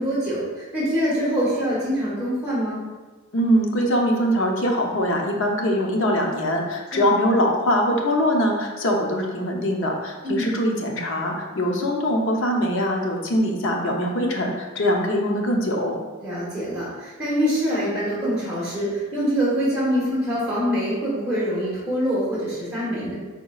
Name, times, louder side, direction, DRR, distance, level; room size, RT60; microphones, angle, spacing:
voice 1, 0.0-2.8 6.9-7.1 10.2-10.5 16.2-23.1, equal, 5° right, -10 dB, 1.2 m, -24 dB
voice 2, 3.3-16.0, equal, 65° left, 0 dB, 0.7 m, -22 dB
5.0 x 4.1 x 2.3 m, 1.3 s
head